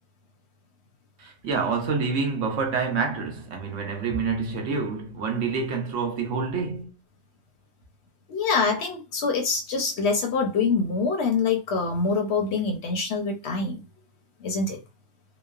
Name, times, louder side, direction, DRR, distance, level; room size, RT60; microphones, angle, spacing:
voice 1, 1.2-6.9, right 5 dB, 70° right, 1.0 m, -27 dB
voice 2, 8.3-13.8 14.4-14.8, left 4 dB, 65° left, 0.8 m, -25 dB
3.0 x 2.0 x 2.3 m
omnidirectional pair, 1.3 m